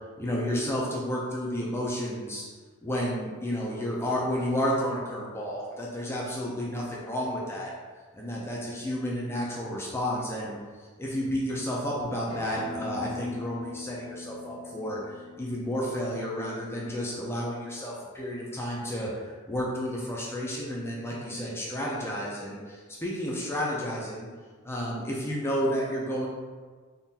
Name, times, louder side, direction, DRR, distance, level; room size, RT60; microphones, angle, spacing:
voice 1, 0.2-2.4 2.8-7.7 8.1-15.0 15.4-24.3 24.6-26.3, equal, 10° left, -4 dB, 0.5 m, -31 dB
Acoustic guitar, 12.3-17.5, left 3 dB, 65° left, 0.6 m, -42 dB
3.7 x 2.5 x 2.7 m, 1.5 s
head